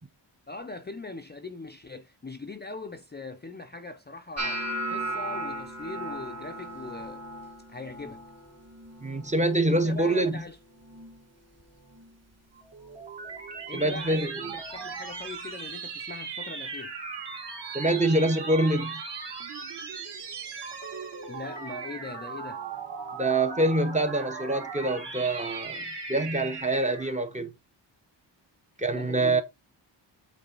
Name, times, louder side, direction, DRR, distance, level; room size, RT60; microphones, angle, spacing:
voice 1, 0.5-7.2 7.7-8.2 9.7-10.6 13.7-16.9 21.3-22.6 28.9-29.4, left 3 dB, 25° left, 0.5 m, -41 dB
sound 1, 4.4-10.5 10.7-11.2 11.6-12.1 12.8-13.0 14.7-14.8, right 1 dB, 35° right, 1.4 m, -37 dB
voice 2, 9.0-10.4 13.7-14.5 17.7-19.0 23.2-27.5 28.8-29.4, right 2 dB, 15° right, 0.7 m, -25 dB
sound 2, 12.5-27.2, right 5 dB, 60° right, 2.7 m, -38 dB
8.6 x 3.3 x 3.8 m
wide cardioid pair, 180°, 46 cm